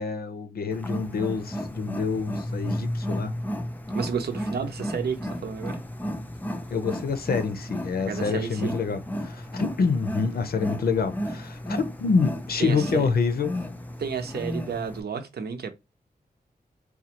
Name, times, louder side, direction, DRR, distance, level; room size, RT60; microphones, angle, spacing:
voice 1, 0.0-3.3 6.7-13.5, left 5 dB, 70° left, 0.6 m, -27 dB
Wild animals, 0.7-15.0, equal, 10° left, 0.4 m, -33 dB
voice 2, 3.9-5.8 8.0-8.7 12.6-13.1 14.0-15.7, right 6 dB, 85° right, 0.7 m, -31 dB
4.1 x 2.3 x 2.9 m
wide cardioid pair, 120°, 16 cm